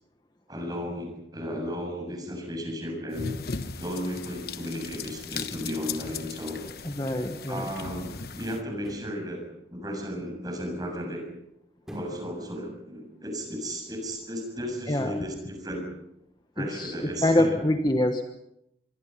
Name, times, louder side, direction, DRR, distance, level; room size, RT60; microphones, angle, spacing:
voice 1, 0.5-3.3 3.8-6.7 7.5-9.4 9.7-11.2 11.9-15.8 16.6-17.6, equal, 20° right, 2 dB, 7.0 m, -34 dB
sound 1, 3.1-8.6, left 5 dB, 55° left, 1.2 m, -37 dB
voice 2, 6.8-7.7 14.9-15.2 16.6-18.2, left 1 dB, 25° left, 6 dB, 1.2 m, -25 dB
sound 2, 8.7-9.2 11.8-12.3 12.7-12.8, equal, 5° right, 5.6 m, -42 dB
26.0 x 23.0 x 5.7 m, 0.81 s
head